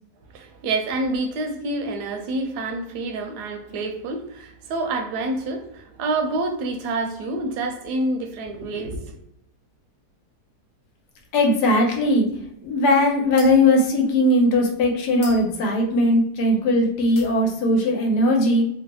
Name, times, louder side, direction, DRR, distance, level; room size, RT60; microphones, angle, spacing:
voice 1, 0.3-9.2, right 2 dB, 80° right, 5 dB, 1.1 m, -27 dB
sound 1, 11.1-16.8 17.1-17.7, left 1 dB, 45° left, 0.9 m, -45 dB
voice 2, 11.3-12.3 12.6-18.6, left 1 dB, 80° left, 1 dB, 1.3 m, -19 dB
3.1 x 2.3 x 2.9 m, 0.77 s
omnidirectional pair, 1.8 m